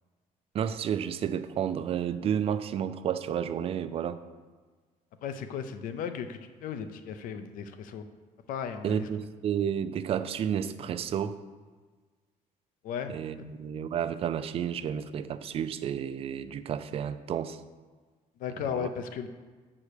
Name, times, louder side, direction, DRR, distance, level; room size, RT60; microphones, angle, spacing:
voice 1, 0.5-4.2 8.8-11.4 13.1-17.6 18.7-18.9, right 8 dB, 45° right, 11 dB, 0.4 m, -31 dB
voice 2, 5.2-8.0 8.5-9.1 12.8-13.1 18.4-19.3, left 7 dB, 80° left, 9 dB, 0.6 m, -35 dB
7.2 x 4.9 x 6.7 m, 1.4 s
cardioid pair, 150°, 14 cm